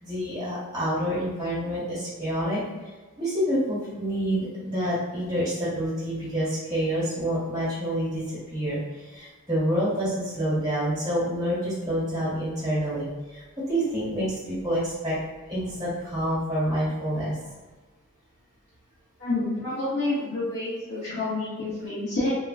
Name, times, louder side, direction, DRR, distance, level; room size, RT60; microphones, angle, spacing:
voice 1, 0.0-2.6 3.2-8.8 9.1-13.4 13.7-15.1 15.5-17.4 21.7-21.8, equal, 20° right, -11 dB, 1.5 m, -27 dB
voice 2, 19.2-22.3, left 2 dB, 45° left, -10 dB, 0.8 m, -28 dB
3.5 x 2.4 x 2.4 m, 1.2 s
head